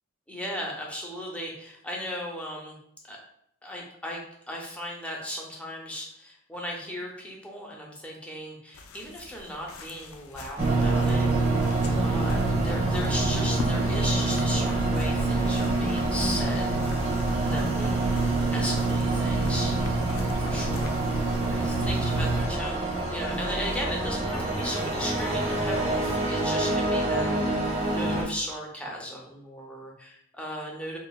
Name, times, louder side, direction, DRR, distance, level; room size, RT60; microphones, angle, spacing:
voice 1, 0.3-2.8 3.1-3.2 3.6-4.2 4.5-11.3 11.6-16.8 17.5-18.1 18.5-19.8 20.4-21.0 21.4-31.0, equal, 5° left, -2 dB, 0.5 m, -36 dB
sound 1, 8.7-21.5, left 3 dB, 85° left, 0.4 m, -43 dB
sound 2, 10.6-28.2, right 1 dB, 35° right, 0.8 m, -29 dB
sound 3, 10.6-22.5, right 3 dB, 75° right, 0.3 m, -27 dB
3.0 x 2.1 x 2.3 m, 0.72 s
head